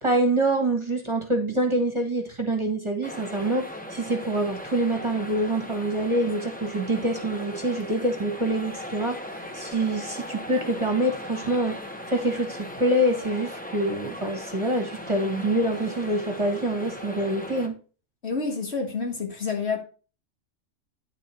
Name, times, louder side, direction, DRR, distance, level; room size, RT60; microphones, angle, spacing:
voice 1, 0.0-11.8 12.1-17.7, right 1 dB, 25° right, 1.4 m, -26 dB
sound 1, 3.0-17.7, equal, 10° left, 0.9 m, -38 dB
voice 2, 18.2-19.8, left 4 dB, 55° left, 2.0 m, -28 dB
9.5 x 5.0 x 4.3 m
omnidirectional pair, 1.3 m